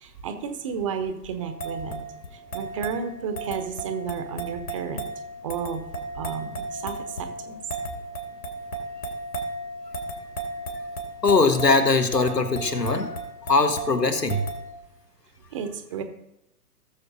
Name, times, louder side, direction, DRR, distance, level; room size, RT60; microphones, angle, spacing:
voice 1, 0.0-2.0 2.3-5.1 5.4-5.8 6.1-7.6 15.5-16.0, right 6 dB, 20° right, 8 dB, 0.7 m, -32 dB
sound 1, 1.4-14.7, right 2 dB, 65° left, 2.7 m, -35 dB
voice 2, 11.2-13.2 13.5-14.4, left 3 dB, 85° left, 7 dB, 1.5 m, -21 dB
18.0 x 7.2 x 2.7 m, 0.89 s
figure-of-eight pair, 125°, 47 cm